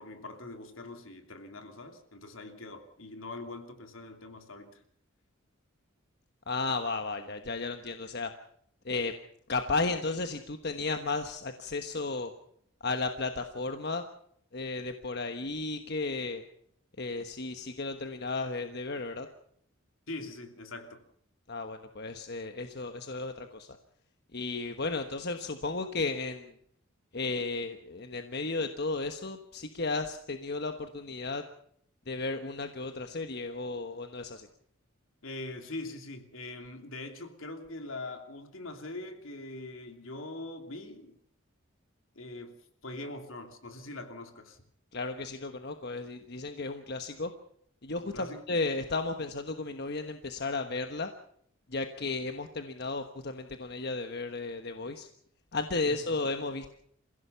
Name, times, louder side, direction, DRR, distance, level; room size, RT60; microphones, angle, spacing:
voice 1, 0.0-4.8 20.1-21.0 35.2-41.2 42.1-42.5 42.8-44.6 48.0-48.4 55.9-56.0, left 2 dB, 75° left, 5 dB, 2.9 m, -42 dB
voice 2, 6.5-8.3 8.8-9.1 9.5-12.3 12.8-14.0 14.5-16.4 17.0-19.3 21.5-23.7 24.3-26.5 27.1-31.4 32.1-34.5 44.9-47.3 47.8-51.1 51.7-55.1 55.5-56.7, left 3 dB, 50° left, 7 dB, 1.2 m, -34 dB
29.0 x 16.0 x 5.7 m, 0.67 s
head